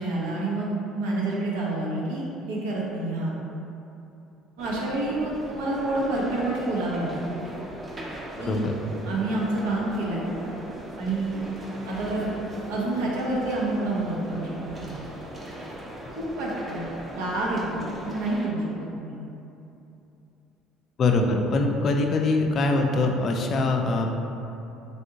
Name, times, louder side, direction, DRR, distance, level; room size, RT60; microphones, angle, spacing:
voice 1, 0.0-3.3 4.6-7.4 8.4-8.6 9.0-10.2 11.0-11.4 11.9-12.3 12.7-14.5 14.8-14.9 16.2-16.9 17.1-19.2, right 2 dB, 85° right, -4 dB, 0.6 m, -28 dB
sound 1, 4.6-18.5, right 1 dB, 30° right, 0.6 m, -39 dB
voice 2, 8.5-8.8 21.0-24.1, left 2 dB, 50° left, 3 dB, 0.3 m, -23 dB
3.4 x 2.6 x 2.8 m, 2.8 s
supercardioid pair, 80°, 0 cm